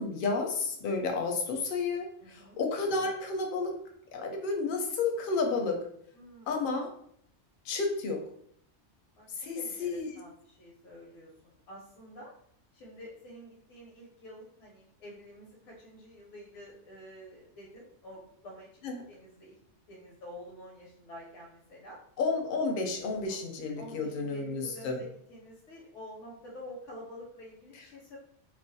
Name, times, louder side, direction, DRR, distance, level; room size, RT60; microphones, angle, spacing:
voice 1, 0.0-3.8 4.1-5.8 6.5-6.9 7.6-8.2 9.4-10.1 18.8-19.0 22.2-25.0, left 4 dB, 60° left, 3 dB, 0.6 m, -31 dB
voice 2, 2.2-2.6 6.1-6.7 9.2-9.3 9.5-12.3 12.7-19.6 19.9-22.0 23.3-23.4 23.8-28.2, left 1 dB, 85° left, -3 dB, 0.9 m, -48 dB
2.4 x 2.0 x 2.6 m, 0.67 s
omnidirectional pair, 1.2 m